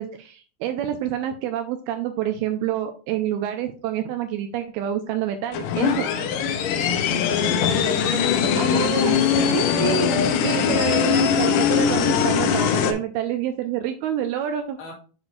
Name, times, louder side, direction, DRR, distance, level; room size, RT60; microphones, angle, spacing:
voice 1, 0.0-6.1 8.6-14.8, right 10 dB, 80° right, 2.3 m, -28 dB
sound 1, 5.5-12.9, left 7 dB, 85° left, 1.9 m, -21 dB
voice 2, 5.8-10.3 14.8-14.9, left 4 dB, 65° left, 4.1 m, -34 dB
7.7 x 6.2 x 2.6 m
omnidirectional pair, 4.9 m